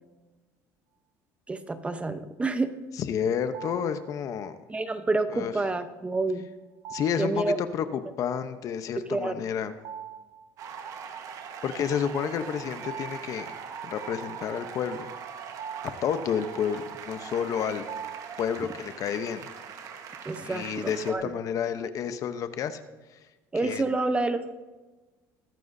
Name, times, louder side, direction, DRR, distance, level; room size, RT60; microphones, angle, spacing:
voice 1, 1.5-2.7 4.7-6.5 7.2-7.6 9.1-9.4 20.2-21.3 23.5-24.5, right 3 dB, 15° right, 10 dB, 0.8 m, -28 dB
voice 2, 3.0-4.6 5.3-5.5 6.9-9.7 11.6-13.5 13.8-15.1 16.0-17.8 18.4-19.5 20.4-22.8 23.6-23.8, left 8 dB, 50° left, 10 dB, 0.9 m, -30 dB
sound 1, 3.5-4.2 6.8-7.5 9.7-10.5 10.8-10.9 12.4-13.9 14.9-18.8, right 8 dB, 70° right, 1.0 m, -43 dB
sound 2, 10.6-21.1, right 7 dB, 55° right, 1.4 m, -41 dB
21.5 x 9.3 x 2.7 m, 1.2 s
cardioid pair, 110°, 7 cm